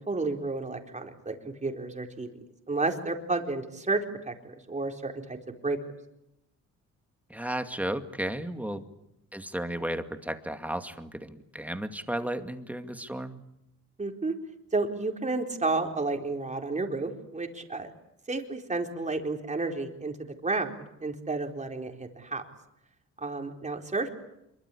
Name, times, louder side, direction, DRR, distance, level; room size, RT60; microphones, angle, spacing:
voice 1, 0.0-2.3 2.7-4.0 4.3-5.4 5.6-5.8 14.0-14.3 14.7-17.9 18.3-20.1 20.4-22.4 23.2-24.1, right 3 dB, 25° right, 3 dB, 4.3 m, -31 dB
voice 2, 7.3-8.8 9.3-13.4, right 1 dB, 5° right, 7 dB, 2.3 m, -34 dB
26.0 x 23.5 x 8.6 m, 0.85 s
cardioid pair, 90°, 30 cm